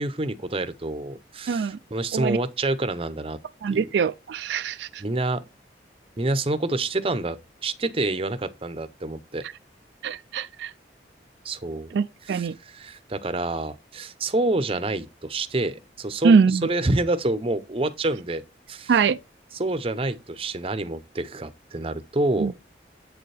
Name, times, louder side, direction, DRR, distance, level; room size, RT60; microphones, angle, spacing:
voice 1, 0.0-3.4 3.7-3.9 5.0-5.4 6.2-9.4 11.4-11.9 12.2-18.4 18.7-19.0 19.5-22.5, right 2 dB, 30° right, 0.7 m, -27 dB
voice 2, 1.5-1.8 2.1-2.4 3.6-5.0 10.0-10.7 11.9-12.6 16.2-16.7 18.9-19.2 22.4-22.5, right 5 dB, 70° right, 0.3 m, -22 dB
8.3 x 6.8 x 3.3 m
head